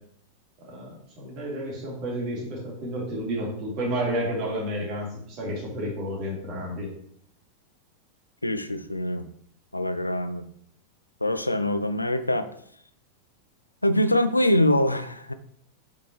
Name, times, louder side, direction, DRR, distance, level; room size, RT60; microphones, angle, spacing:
voice 1, 0.6-6.9, equal, 40° right, -3 dB, 2.9 m, -31 dB
voice 2, 8.4-9.3 9.7-10.5 11.2-12.5 13.8-15.3, left 1 dB, 85° left, 11 dB, 0.4 m, -24 dB
7.3 x 5.7 x 3.2 m, 0.65 s
figure-of-eight pair, 90°, 0 cm